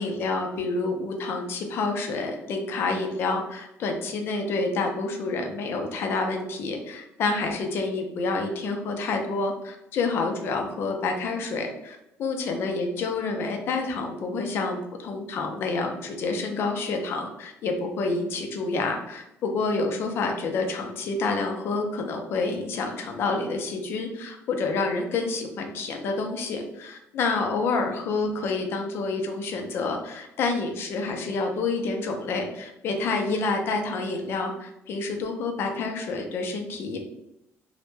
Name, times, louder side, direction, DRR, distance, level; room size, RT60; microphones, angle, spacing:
voice 1, 0.0-37.0, left 3 dB, 45° left, 3 dB, 0.4 m, -28 dB
2.1 x 2.1 x 3.1 m, 0.84 s
cardioid pair, 180°, 5 cm